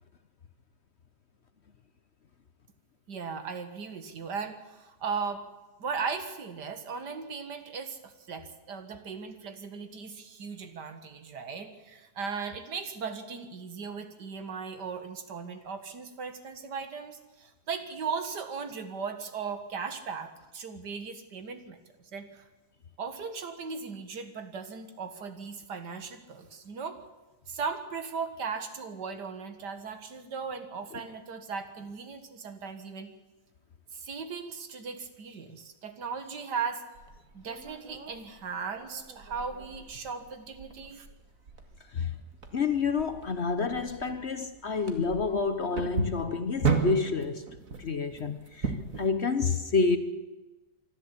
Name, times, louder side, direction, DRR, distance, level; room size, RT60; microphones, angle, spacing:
voice 1, 3.1-5.4 5.8-22.5 23.0-27.0 27.5-33.1 33.9-36.8 37.3-41.1, right 5 dB, 75° right, 2.2 m, -37 dB
sound 1, 36.9-49.1, right 5 dB, 50° right, 2.3 m, -36 dB
voice 2, 42.5-47.5 47.8-50.0, left 4 dB, 45° left, 1.0 m, -28 dB
25.0 x 12.5 x 8.4 m
omnidirectional pair, 1.8 m